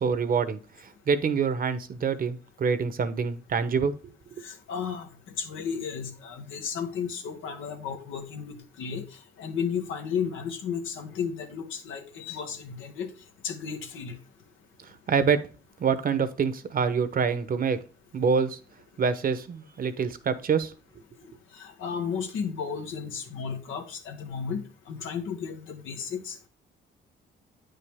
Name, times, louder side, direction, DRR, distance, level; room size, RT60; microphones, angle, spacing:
voice 1, 0.0-4.4 14.8-15.4 15.8-17.8 18.1-18.6 19.0-20.7, right 6 dB, 45° right, 12 dB, 1.0 m, -26 dB
voice 2, 4.4-5.1 5.4-9.0 9.4-13.1 13.4-14.2 21.6-26.5, left 6 dB, 85° left, 5 dB, 1.6 m, -33 dB
9.1 x 5.6 x 3.6 m, 0.37 s
cardioid pair, 90°, 20 cm